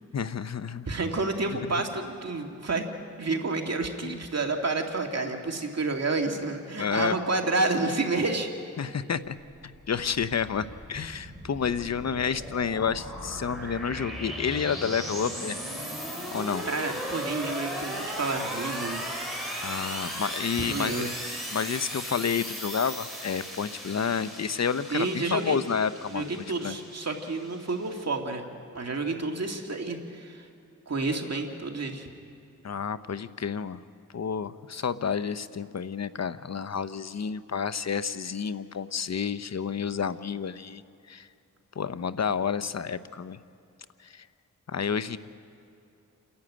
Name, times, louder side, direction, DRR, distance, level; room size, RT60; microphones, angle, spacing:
voice 1, 0.1-0.9 4.0-4.2 6.8-7.2 8.8-9.4 9.6-15.6 16.3-16.6 19.6-21.0 21.5-26.2 26.6-26.8 32.6-33.8 34.1-40.8 41.1-41.3 41.8-43.4 44.0-44.2 44.7-45.2, left 6 dB, 55° left, 13 dB, 0.7 m, -30 dB
voice 2, 0.9-2.9 3.2-8.5 16.6-19.0 20.5-21.1 24.9-25.6 26.1-28.4 28.7-30.5 30.9-32.1, right 3 dB, 55° right, 2 dB, 2.4 m, -29 dB
sound 1, 9.6-28.0, equal, ahead, 6.9 m, -37 dB
29.0 x 11.5 x 8.9 m, 2.7 s
cardioid pair, 60°, 32 cm